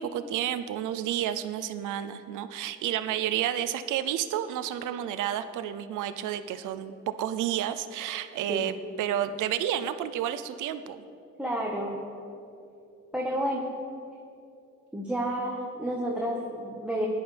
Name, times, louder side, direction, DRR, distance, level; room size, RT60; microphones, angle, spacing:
voice 1, 0.0-11.0, right 11 dB, 85° right, 12 dB, 0.7 m, -31 dB
voice 2, 11.4-12.0 13.1-13.7 14.9-17.1, right 1 dB, 5° right, -3 dB, 1.5 m, -30 dB
16.5 x 11.0 x 3.5 m, 2.6 s
cardioid pair, 90°, 30 cm